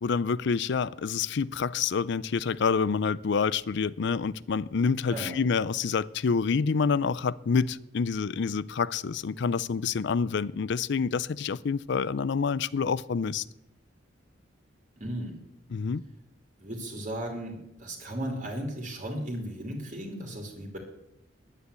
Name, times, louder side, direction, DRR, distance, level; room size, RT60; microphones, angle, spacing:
voice 1, 0.0-13.4 15.7-16.0, left 5 dB, 65° left, 0.5 m, -27 dB
voice 2, 15.0-15.4 16.6-20.8, right 1 dB, 40° right, 2.7 m, -35 dB
10.5 x 9.9 x 8.1 m
head